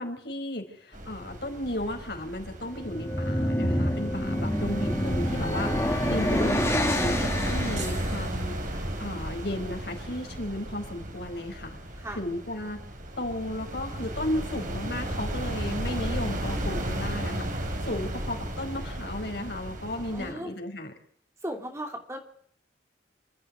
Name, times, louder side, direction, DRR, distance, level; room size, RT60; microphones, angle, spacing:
voice 1, 0.0-11.8 12.1-12.8 13.2-17.5 17.8-20.9, left 1 dB, 55° left, 3 dB, 4.9 m, -34 dB
sound 1, 0.9-20.3, right 1 dB, 45° right, 3.5 m, -34 dB
sound 2, 2.8-8.2, equal, 15° left, 2.3 m, -27 dB
sound 3, 7.8-9.3, right 5 dB, 80° right, 5.0 m, -44 dB
voice 2, 20.1-20.5 21.4-22.2, right 1 dB, 15° right, 3 dB, 2.9 m, -36 dB
27.5 x 12.5 x 8.1 m, 0.65 s
head